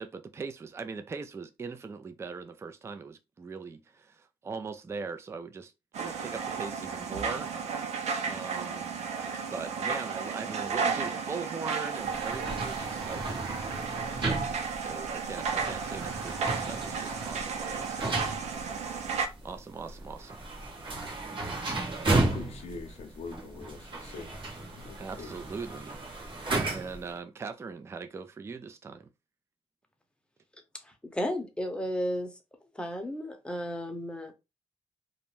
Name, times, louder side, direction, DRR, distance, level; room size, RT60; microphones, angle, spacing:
voice 1, 0.0-5.7 6.0-8.8 9.5-13.4 14.2-14.4 14.8-18.1 19.4-20.4 25.0-26.0 26.7-29.1, right 4 dB, 25° right, 0.3 m, -41 dB
sound 1, 5.9-19.3, right 5 dB, 75° right, 0.5 m, -33 dB
sound 2, 12.0-27.1, right 2 dB, 45° right, 1.2 m, -34 dB
voice 2, 22.2-24.3 24.7-25.3, left 4 dB, 65° left, 0.6 m, -43 dB
voice 3, 30.8-32.3 32.7-34.3, left 1 dB, 10° left, 0.8 m, -33 dB
2.5 x 2.1 x 3.1 m
cardioid pair, 80°, 11 cm